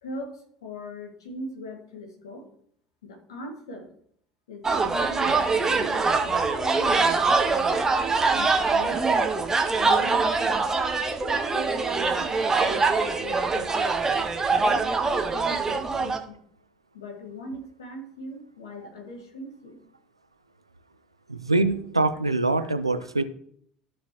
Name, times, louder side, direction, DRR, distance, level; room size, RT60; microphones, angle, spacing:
voice 1, 0.0-2.4 3.0-3.9 4.5-7.6 8.3-9.3 9.7-10.6 11.5-12.9 13.2-13.8 14.5-16.4 16.9-19.8 22.6-22.7, equal, 70° left, 2 dB, 1.9 m, -40 dB
sound 1, 4.6-16.2, right 4 dB, 20° right, 1.1 m, -23 dB
voice 2, 21.3-23.2, right 2 dB, 85° right, 11 dB, 0.5 m, -24 dB
14.0 x 5.0 x 3.0 m, 0.64 s
figure-of-eight pair, 65°, 3 cm